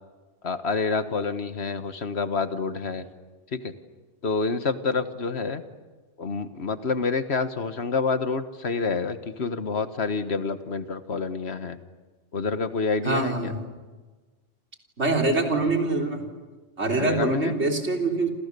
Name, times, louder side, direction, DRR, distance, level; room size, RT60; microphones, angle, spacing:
voice 1, 0.4-3.1 3.5-3.7 4.2-5.6 6.2-11.8 12.3-13.5 17.0-17.6, left 4 dB, 65° left, 10 dB, 1.6 m, -28 dB
voice 2, 13.0-13.6 15.0-16.2 16.8-18.3, right 3 dB, 70° right, 2 dB, 4.0 m, -24 dB
28.5 x 28.5 x 6.9 m, 1.3 s
omnidirectional pair, 1.2 m